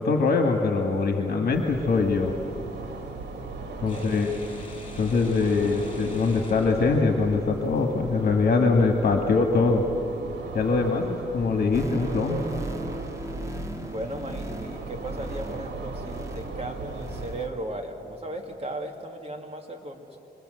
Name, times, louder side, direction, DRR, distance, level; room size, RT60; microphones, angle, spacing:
voice 1, 0.0-2.4 3.8-4.3 5.0-9.9 10.5-12.4, left 4 dB, 65° left, 3 dB, 1.7 m, -23 dB
sound 1, 1.5-17.5, right 3 dB, 85° right, 2.7 m, -38 dB
voice 2, 3.7-4.0 13.8-20.2, right 1 dB, 35° right, 3 dB, 2.3 m, -36 dB
sound 2, 3.9-7.5, left 2 dB, 30° left, 6.0 m, -46 dB
sound 3, 11.7-16.6 16.9-17.5 17.8-17.9, right 1 dB, 20° right, 1.9 m, -37 dB
26.5 x 23.5 x 7.9 m, 2.9 s
cardioid pair, 110°, 17 cm